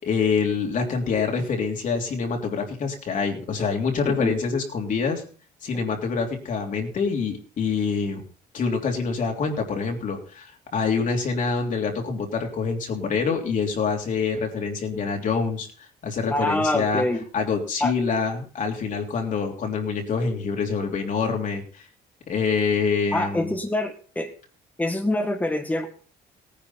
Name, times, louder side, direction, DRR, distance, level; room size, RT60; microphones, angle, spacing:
voice 1, 0.0-5.2 5.6-8.2 8.5-15.7 16.0-17.0 17.3-21.9 22.3-23.5, left 5 dB, 50° left, 2 dB, 3.2 m, -26 dB
voice 2, 16.3-17.2 17.8-17.9 23.1-24.3 24.8-25.9, left 1 dB, 10° left, 2 dB, 1.9 m, -25 dB
17.5 x 10.0 x 4.3 m, 0.41 s
cardioid pair, 110°, 17 cm